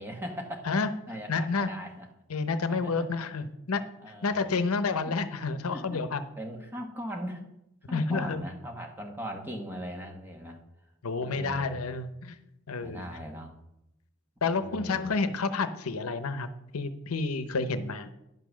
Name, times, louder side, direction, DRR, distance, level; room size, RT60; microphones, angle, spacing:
voice 1, 0.0-0.7 1.1-2.1 2.6-3.1 4.0-4.7 5.0-5.2 5.7-6.0 6.4-7.5 7.9-10.6 11.2-11.8 12.8-13.5 14.4-15.1, equal, 10° right, 2 dB, 1.3 m, -40 dB
voice 2, 1.3-1.7 2.3-3.8 4.2-6.2 7.9-8.4 11.0-12.4 12.7-13.1 14.4-16.5 16.7-18.1, left 4 dB, 85° left, 11 dB, 0.7 m, -29 dB
11.0 x 5.8 x 6.2 m, 0.85 s
head